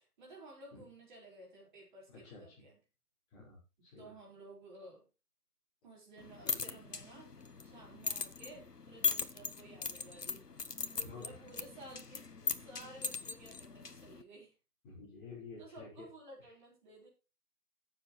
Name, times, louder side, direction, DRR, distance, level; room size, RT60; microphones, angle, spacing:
voice 1, 0.0-2.8 4.0-5.1 5.8-7.3 7.6-14.5 15.6-17.1, right 2 dB, 30° right, -2 dB, 4.9 m, -54 dB
voice 2, 2.1-2.6 3.3-4.1 6.4-6.6 11.0-11.2 14.8-16.1 16.4-16.5, left 4 dB, 15° left, -6 dB, 5.0 m, -51 dB
sound 1, 6.2-14.2, left 4 dB, 85° left, 1.4 m, -40 dB
20.0 x 7.5 x 3.2 m, 0.29 s
figure-of-eight pair, 155°, 46 cm